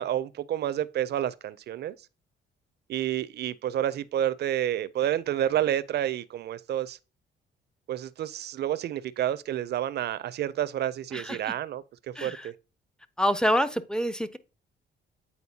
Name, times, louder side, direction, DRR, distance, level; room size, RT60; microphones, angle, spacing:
voice 1, 0.0-1.9 2.9-7.0 7.9-12.5, right 11 dB, 55° right, 0.4 m, -29 dB
voice 2, 12.2-12.5 13.2-14.4, equal, 5° left, 0.4 m, -26 dB
8.5 x 4.0 x 2.7 m
cardioid pair, 90°, 20 cm